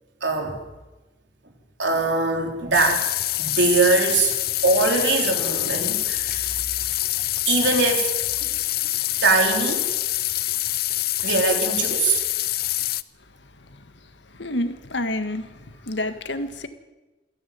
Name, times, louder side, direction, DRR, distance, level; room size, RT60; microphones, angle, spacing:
voice 1, 0.2-0.6 1.8-3.1 3.4-4.3 4.6-6.5 7.5-8.1 8.4-8.5 9.2-9.8 11.2-12.2, right 3 dB, 80° right, 2 dB, 4.0 m, -21 dB
sound 1, 2.7-13.0, left 16 dB, 55° left, 0.6 m, -25 dB
voice 2, 14.4-15.5 15.9-16.7, left 1 dB, 75° left, 9 dB, 1.8 m, -28 dB
27.0 x 10.5 x 9.5 m, 1.1 s
head